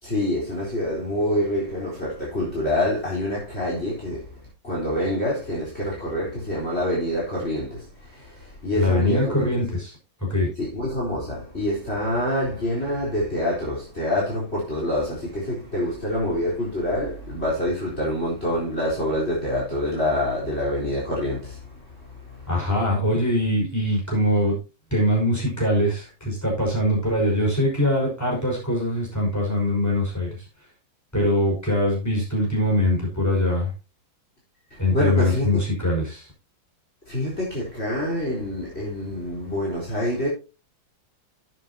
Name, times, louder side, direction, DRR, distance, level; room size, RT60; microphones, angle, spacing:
voice 1, 0.0-4.3 4.6-9.6 10.6-22.5 34.7-35.5 37.1-40.3, left 1 dB, 30° left, 4.5 m, -26 dB
voice 2, 8.7-10.5 22.5-24.6 24.9-30.4 31.1-33.7 34.8-36.3, left 1 dB, 10° left, 5.5 m, -23 dB
11.5 x 9.2 x 2.8 m
omnidirectional pair, 2.1 m